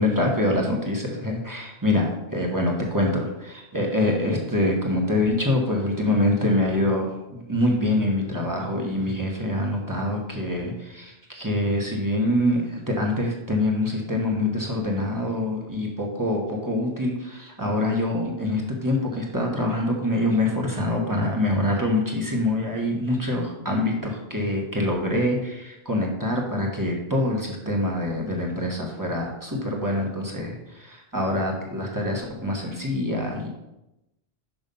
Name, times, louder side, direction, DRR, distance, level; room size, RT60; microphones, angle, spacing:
voice 1, 0.0-33.5, left 1 dB, 15° right, -1 dB, 1.3 m, -25 dB
6.1 x 5.5 x 5.4 m, 0.93 s
omnidirectional pair, 1.2 m